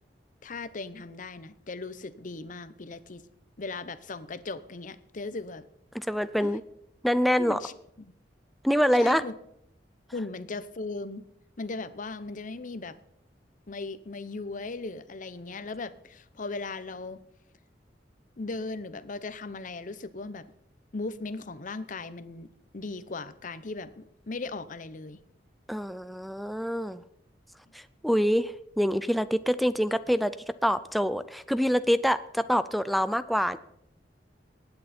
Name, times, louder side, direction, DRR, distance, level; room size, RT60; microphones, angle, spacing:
voice 1, 0.4-3.2 3.6-5.6 6.4-6.6 7.4-8.1 8.9-9.3 10.1-11.2 11.6-12.9 13.7-17.2 18.4-20.4 20.9-22.5 22.7-25.2, left 3 dB, 50° left, 14 dB, 0.8 m, -38 dB
voice 2, 5.9-6.6 7.0-7.6 8.6-9.2 25.7-27.0 27.7-30.3 30.6-33.6, equal, ahead, 12 dB, 0.4 m, -25 dB
19.0 x 8.9 x 4.3 m, 0.75 s
head